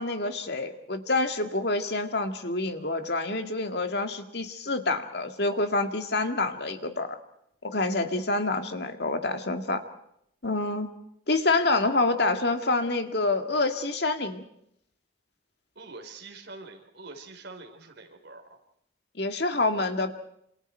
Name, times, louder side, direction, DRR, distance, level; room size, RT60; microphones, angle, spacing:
voice 1, 0.0-7.2 7.6-9.8 10.4-10.9 11.3-14.4 19.2-20.1, left 2 dB, 55° left, 6 dB, 2.1 m, -27 dB
voice 2, 15.7-18.6, right 3 dB, 60° right, 3 dB, 4.3 m, -45 dB
28.0 x 27.5 x 4.6 m, 0.73 s
head